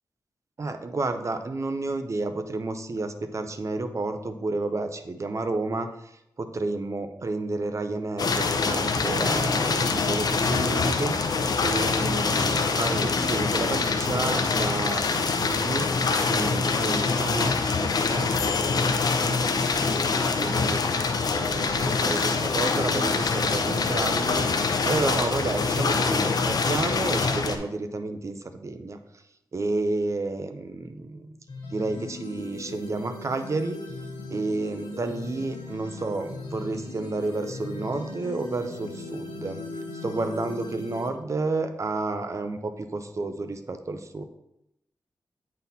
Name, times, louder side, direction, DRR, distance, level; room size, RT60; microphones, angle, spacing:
voice 1, 0.6-15.9 16.2-17.5 17.8-18.9 19.2-29.0 29.5-31.3 31.7-33.8 34.3-39.6 40.0-44.2, right 3 dB, 40° right, 8 dB, 0.6 m, -31 dB
sound 1, 8.2-27.6, left 4 dB, 60° left, 0.6 m, -25 dB
sound 2, 31.5-41.1, left 3 dB, 80° left, 1.2 m, -38 dB
8.6 x 4.2 x 4.1 m, 0.83 s
wide cardioid pair, 115°, 8 cm